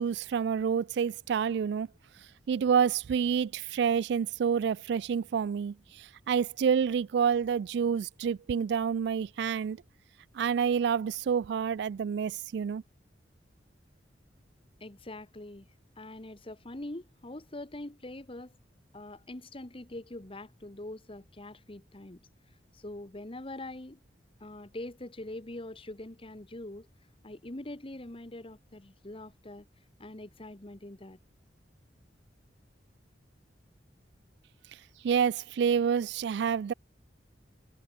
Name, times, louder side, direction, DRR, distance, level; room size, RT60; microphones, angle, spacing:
voice 1, 0.0-1.9 2.5-9.8 10.3-12.8 35.0-36.7, right 7 dB, 65° right, 0.3 m, -28 dB
voice 2, 14.8-15.7 16.0-18.6 18.9-22.2 22.7-24.0 24.4-26.9 27.2-29.7 30.0-31.2, left 1 dB, 30° left, 1.4 m, -43 dB
head